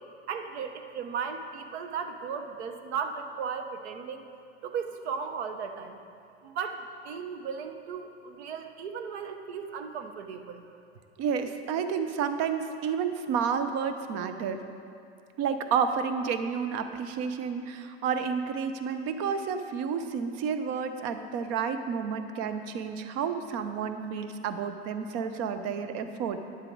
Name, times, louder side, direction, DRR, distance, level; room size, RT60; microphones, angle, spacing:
voice 1, 0.3-4.2 4.6-6.0 6.4-10.6, right 6 dB, 75° right, 7 dB, 0.9 m, -36 dB
voice 2, 11.2-14.6 15.4-26.4, right 6 dB, 50° right, 9 dB, 0.8 m, -30 dB
10.0 x 7.7 x 4.6 m, 2.5 s
hypercardioid pair, 95°, 33 cm